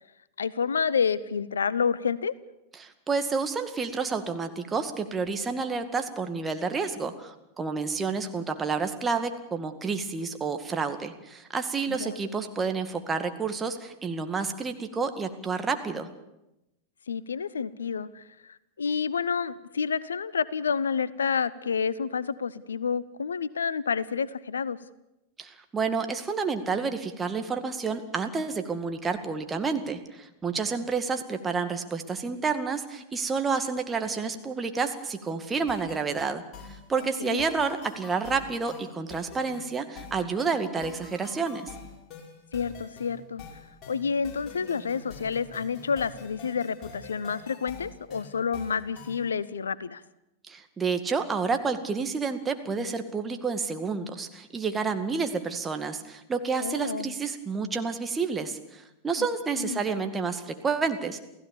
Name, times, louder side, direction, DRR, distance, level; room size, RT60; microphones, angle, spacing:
voice 1, 0.4-2.3 11.9-12.2 17.1-24.8 37.2-37.4 42.5-43.4 43.9-50.0 56.6-57.1 59.2-59.3 59.6-59.8, left 6 dB, 70° left, 20 dB, 0.7 m, -29 dB
voice 2, 2.8-16.1 25.4-36.4 36.7-41.7 50.5-61.3, right 5 dB, 15° right, 7 dB, 2.1 m, -30 dB
sound 1, 35.7-49.3, left 5 dB, 35° left, 5.8 m, -46 dB
28.5 x 16.0 x 7.1 m, 0.91 s
figure-of-eight pair, 90°, 0 cm